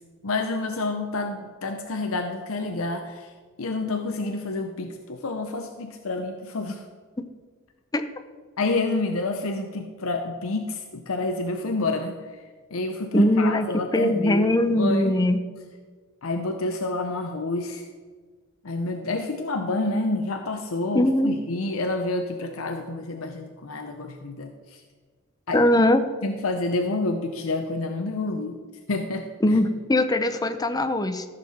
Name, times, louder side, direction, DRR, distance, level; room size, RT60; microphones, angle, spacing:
voice 1, 0.2-3.3 3.6-6.8 8.6-12.4 12.7-14.5 14.8-15.3 16.2-17.9 18.6-24.8 25.5-25.6 26.2-28.6 28.9-29.6, left 2 dB, 70° left, 5 dB, 0.7 m, -28 dB
voice 2, 13.1-13.7 13.9-15.4 20.9-21.4 25.5-26.0 29.4-31.2, left 1 dB, 20° left, 9 dB, 0.6 m, -21 dB
14.5 x 6.6 x 4.2 m, 1.5 s
head